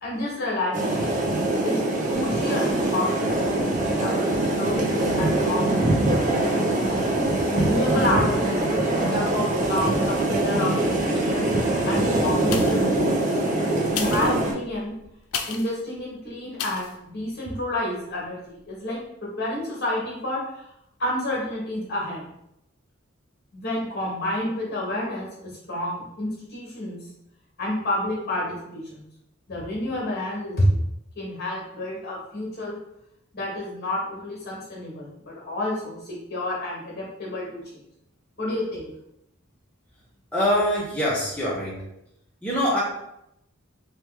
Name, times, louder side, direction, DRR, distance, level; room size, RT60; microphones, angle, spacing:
voice 1, 0.0-1.1 1.6-3.6 4.0-6.4 7.5-11.5 11.9-13.2 13.9-14.9 15.5-20.7 21.0-22.2 23.5-27.0 27.6-29.0 29.5-30.8 31.1-32.8 33.3-37.8 38.4-38.9, left 1 dB, 50° left, -3 dB, 1.2 m, -29 dB
sound 1, 0.7-14.5, right 2 dB, 35° right, 0.5 m, -23 dB
sound 2, 12.5-13.0 13.8-15.8 16.6-17.0 17.5-17.6, left 7 dB, 85° left, 0.4 m, -33 dB
voice 2, 40.3-41.9 42.4-42.8, equal, 5° left, -6 dB, 0.5 m, -24 dB
3.0 x 2.2 x 3.2 m, 0.79 s
head